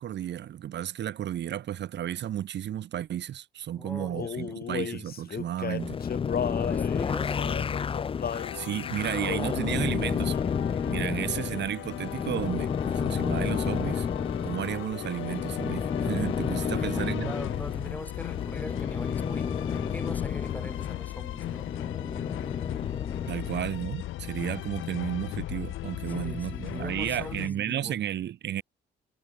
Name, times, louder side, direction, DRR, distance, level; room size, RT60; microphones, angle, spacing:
voice 1, 0.0-6.0 8.5-10.4 10.9-14.1 14.4-17.3 23.3-28.6, right 11 dB, 60° right, 1.0 m, -33 dB
voice 2, 3.7-4.6 6.3-7.8 16.7-21.7 26.1-28.0, left 1 dB, 10° left, 4.2 m, -42 dB
Male singing, 4.1-8.5 9.3-9.7 10.3-10.6 10.9-11.8, left 7 dB, 50° left, 3.1 m, -35 dB
sound 1, 5.8-23.5, left 6 dB, 25° left, 0.4 m, -31 dB
sound 2, 8.3-27.5, left 15 dB, 85° left, 2.9 m, -38 dB
cardioid pair, 90°, 20 cm